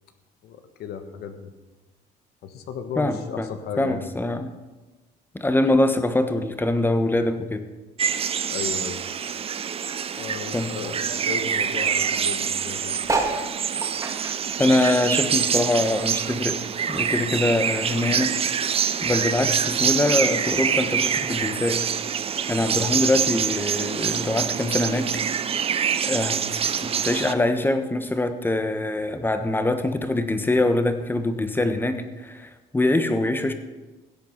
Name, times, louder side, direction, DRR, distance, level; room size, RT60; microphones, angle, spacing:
voice 1, 0.4-1.5 2.4-4.1 8.5-9.0 10.2-12.9, left 7 dB, 75° left, 8 dB, 1.3 m, -35 dB
voice 2, 3.0-4.5 5.3-7.7 10.5-10.7 14.6-18.4 19.0-21.9 22.5-25.2 26.0-26.4 26.8-33.5, left 2 dB, 10° left, 9 dB, 1.2 m, -24 dB
sound 1, 8.0-27.3, right 7 dB, 35° right, 0.6 m, -25 dB
sound 2, 13.0-15.8 16.1-17.6 18.1-18.2 18.4-18.5 18.7-19.1 19.9-20.0, right 3 dB, 20° right, 2.0 m, -30 dB
16.0 x 8.4 x 5.9 m, 1.2 s
cardioid pair, 110°, 17 cm